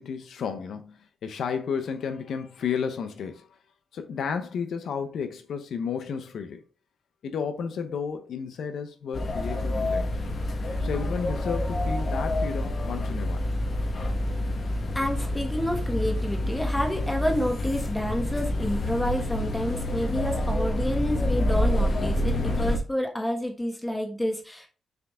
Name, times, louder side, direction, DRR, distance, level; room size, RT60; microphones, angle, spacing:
voice 1, 0.0-3.5 3.9-6.6 7.2-10.1 10.8-13.5, left 6 dB, 70° left, 0.9 m, -32 dB
sound 1, 9.1-22.8, left 1 dB, 40° left, 1.4 m, -27 dB
voice 2, 14.9-24.7, equal, 10° left, 1.4 m, -29 dB
6.7 x 4.8 x 3.7 m
wide cardioid pair, 135°, 0 cm